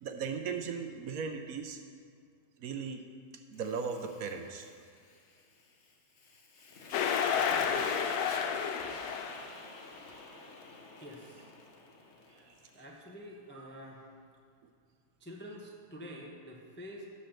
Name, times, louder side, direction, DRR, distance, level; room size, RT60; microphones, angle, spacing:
voice 1, 0.0-1.8 2.6-3.0 3.5-4.7 12.3-12.5 13.6-13.7, right 5 dB, 70° right, 6 dB, 0.9 m, -37 dB
Fire, 3.5-12.8, left 3 dB, 50° left, 1.2 m, -48 dB
sound 1, 6.9-9.5, left 7 dB, 75° left, 1.0 m, -30 dB
voice 2, 11.0-11.5 12.7-14.1 15.2-17.0, equal, 15° left, -1 dB, 0.4 m, -47 dB
11.5 x 4.3 x 6.5 m, 2.2 s
omnidirectional pair, 1.7 m